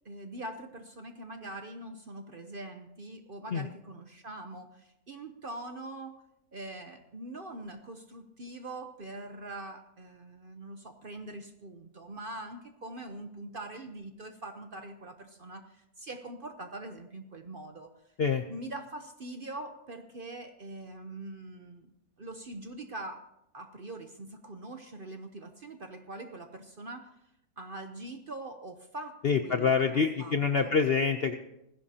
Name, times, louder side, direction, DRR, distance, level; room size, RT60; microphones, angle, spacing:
voice 1, 0.0-6.2 6.5-17.9 18.5-21.9 22.2-23.2 23.5-27.1 27.6-30.7, right 2 dB, 45° right, 7 dB, 0.8 m, -43 dB
voice 2, 29.2-31.3, left 5 dB, 55° left, 7 dB, 0.6 m, -26 dB
20.0 x 15.5 x 2.8 m, 0.83 s
omnidirectional pair, 1.7 m